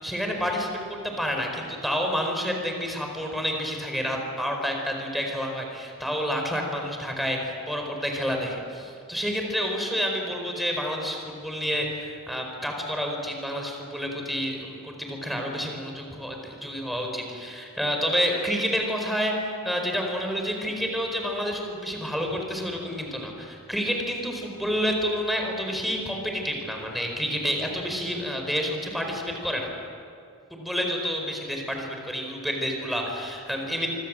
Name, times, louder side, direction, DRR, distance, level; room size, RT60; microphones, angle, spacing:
voice 1, 0.0-29.7 30.5-33.9, equal, ahead, 2 dB, 4.8 m, -29 dB
25.5 x 25.5 x 7.7 m, 2.4 s
head